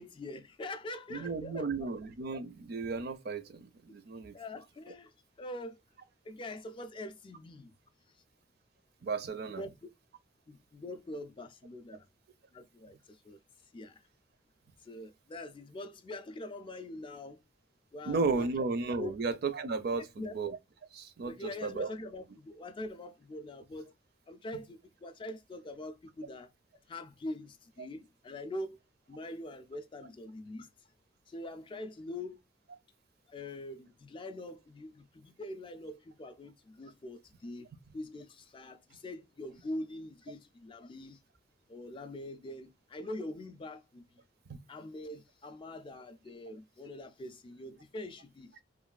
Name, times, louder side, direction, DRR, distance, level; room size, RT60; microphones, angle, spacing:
voice 1, 0.0-1.9 4.3-5.8 6.2-7.7 9.6-9.9 10.5-12.1 12.5-13.4 13.7-14.0 14.8-17.4 17.9-18.5 19.0-19.1 19.9-20.4 21.2-23.9 24.3-26.5 26.9-28.8 29.1-30.7 31.3-32.4 33.3-37.7 37.9-41.2 41.7-44.1 44.7-48.5, left 1 dB, 25° left, 0.3 m, -43 dB
voice 2, 1.1-4.3 9.0-9.6 18.1-20.6 20.9-21.9 44.5-44.6, right 4 dB, 55° right, 0.4 m, -34 dB
3.0 x 2.3 x 2.3 m
head